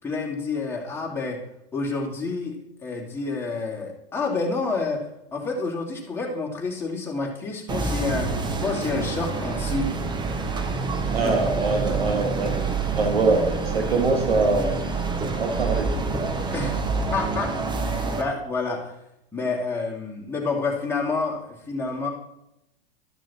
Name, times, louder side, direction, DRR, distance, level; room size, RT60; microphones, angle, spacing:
voice 1, 0.0-1.4 1.7-5.1 5.3-8.3 8.6-9.9 11.2-11.3 16.5-16.8 17.1-17.5 17.8-18.9 19.3-22.1, left 3 dB, 10° left, -3 dB, 2.8 m, -28 dB
sound 1, 7.7-18.2, right 4 dB, 15° right, 1.0 m, -27 dB
voice 2, 11.1-12.6 13.0-14.7 15.4-15.9, right 3 dB, 80° right, 3 dB, 2.1 m, -23 dB
13.0 x 6.1 x 4.4 m, 0.84 s
hypercardioid pair, 110°, 30 cm